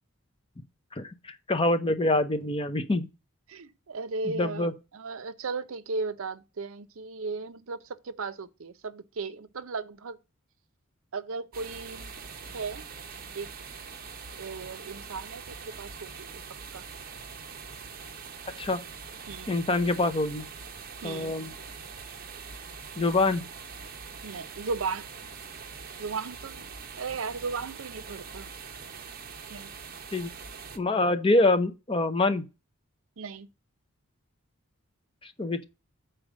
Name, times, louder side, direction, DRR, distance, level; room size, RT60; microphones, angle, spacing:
voice 1, 1.5-3.1 4.3-4.7 18.6-18.8 19.5-20.4 21.0-21.5 23.0-23.4 30.1-30.3 30.7-32.4 35.2-35.6, left 2 dB, 25° left, 0.6 m, -25 dB
voice 2, 3.5-10.2 11.1-12.1 12.5-12.9 13.3-13.5 14.3-16.4 16.7-16.8 19.3-19.5 21.0-21.3 24.2-25.1 26.0-28.5 29.5-29.7 33.2-33.5, right 4 dB, 70° right, 0.6 m, -36 dB
sound 1, 11.5-30.8, right 5 dB, 40° right, 0.8 m, -43 dB
6.4 x 4.5 x 6.2 m
head